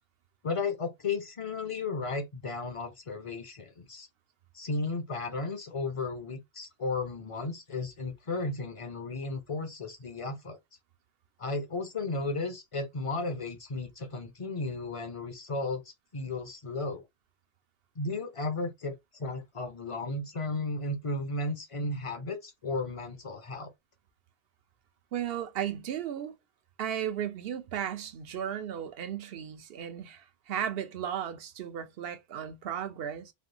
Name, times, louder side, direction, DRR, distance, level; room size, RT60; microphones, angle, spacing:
voice 1, 0.4-4.1 4.5-10.6 11.4-15.8 16.1-17.0 18.0-18.9 19.2-23.7, left 3 dB, 35° left, 0.6 m, -34 dB
voice 2, 25.1-26.3 26.8-33.3, right 9 dB, 70° right, 0.8 m, -35 dB
3.3 x 2.2 x 2.7 m
omnidirectional pair, 1.1 m